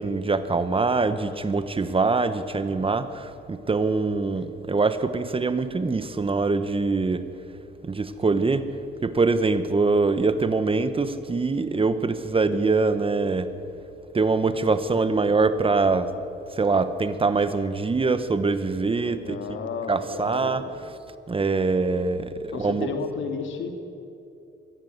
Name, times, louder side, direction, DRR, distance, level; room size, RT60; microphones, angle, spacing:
voice 1, 0.0-7.2 7.8-8.7 9.0-13.5 14.1-16.1 16.5-19.4 19.9-20.6 21.3-22.9, right 3 dB, 25° right, 11 dB, 1.2 m, -23 dB
voice 2, 19.0-20.7 22.5-23.7, left 5 dB, 75° left, 5 dB, 2.7 m, -32 dB
23.0 x 15.5 x 8.0 m, 2.8 s
cardioid pair, 90°, 20 cm